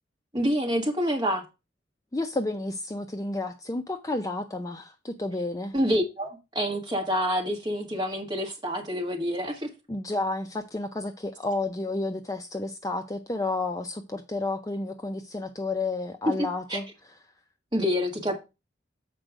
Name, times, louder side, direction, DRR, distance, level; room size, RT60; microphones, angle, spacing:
voice 1, 0.3-1.4 5.7-9.7 16.2-16.8 17.7-18.4, equal, 25° right, 1.6 m, -27 dB
voice 2, 2.1-5.7 9.9-16.9, left 2 dB, 20° left, 0.5 m, -31 dB
7.6 x 4.4 x 4.9 m
head